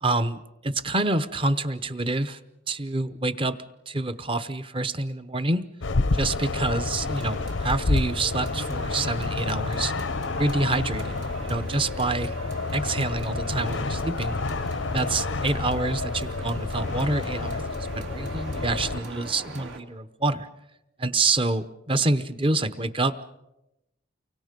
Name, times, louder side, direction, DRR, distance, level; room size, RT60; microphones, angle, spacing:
voice 1, 0.0-2.4 2.7-3.6 3.9-5.6 6.1-9.9 10.4-12.3 12.7-14.3 14.9-20.5 21.0-23.2, right 2 dB, 25° right, 12 dB, 0.8 m, -27 dB
sound 1, 5.8-19.0, left 3 dB, 75° left, 0.7 m, -29 dB
sound 2, 7.0-19.8, right 2 dB, 75° right, 2.6 m, -42 dB
30.0 x 24.0 x 5.2 m, 0.92 s
head